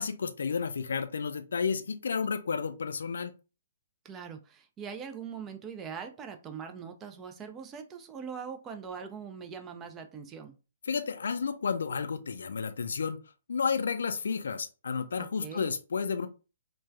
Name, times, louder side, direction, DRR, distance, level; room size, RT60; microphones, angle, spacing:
voice 1, 0.0-3.3 10.9-13.2 13.5-16.3, left 5 dB, 65° left, 9 dB, 0.4 m, -31 dB
voice 2, 4.0-10.6 15.2-15.7, right 6 dB, 20° right, 6 dB, 0.4 m, -42 dB
3.1 x 2.2 x 2.3 m, 0.32 s
figure-of-eight pair, 120°, 0 cm